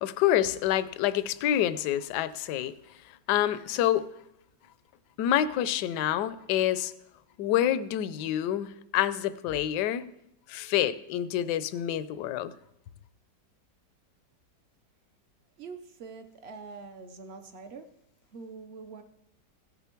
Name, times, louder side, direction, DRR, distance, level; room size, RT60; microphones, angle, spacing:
voice 1, 0.0-2.7 3.0-4.1 5.2-6.9 7.4-10.1 10.5-12.5, left 11 dB, 75° left, 1.1 m, -27 dB
voice 2, 15.6-17.9 18.3-19.0, right 4 dB, 55° right, 0.7 m, -44 dB
17.0 x 6.9 x 4.5 m
omnidirectional pair, 1.9 m